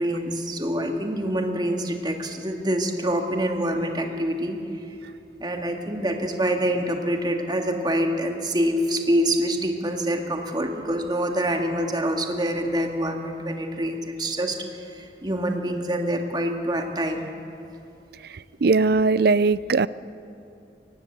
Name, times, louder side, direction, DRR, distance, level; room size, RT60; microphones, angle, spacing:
voice 1, 0.0-4.6 5.4-14.6 14.9-17.3, equal, 25° right, 3 dB, 2.0 m, -26 dB
voice 2, 18.6-19.9, right 4 dB, 55° right, 18 dB, 0.5 m, -19 dB
24.0 x 18.5 x 8.2 m, 2.7 s
head